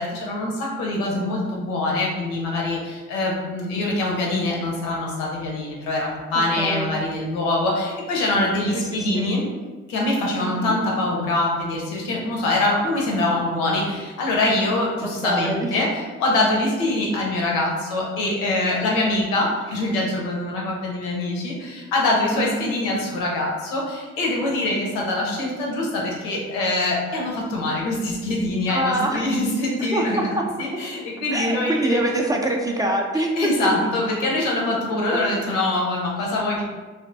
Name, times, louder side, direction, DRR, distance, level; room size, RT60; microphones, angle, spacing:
voice 1, 0.0-9.5 9.9-30.2 30.6-32.3 33.4-36.6, left 2 dB, 90° left, -2 dB, 0.6 m, -24 dB
voice 2, 6.6-7.0 8.7-9.3 10.4-10.8 15.0-15.7 22.3-22.7 25.4-25.5 28.7-29.3 29.9-30.4 31.3-33.7, right 1 dB, 10° right, 0 dB, 0.3 m, -25 dB
2.5 x 2.2 x 2.5 m, 1.3 s
supercardioid pair, 50°, 32 cm